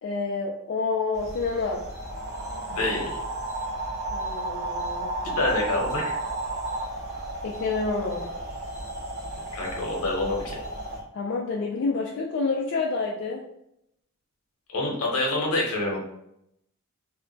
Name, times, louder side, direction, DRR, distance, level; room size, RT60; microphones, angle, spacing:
voice 1, 0.0-1.8 4.1-5.1 7.4-8.3 11.1-13.4, left 4 dB, 55° left, -2 dB, 0.3 m, -28 dB
sound 1, 1.1-11.0, right 2 dB, 45° right, 0.7 m, -33 dB
voice 2, 2.7-3.2 5.2-6.2 9.5-10.6 14.7-16.0, left 2 dB, 85° left, -1 dB, 0.8 m, -27 dB
2.1 x 2.1 x 3.8 m, 0.79 s
head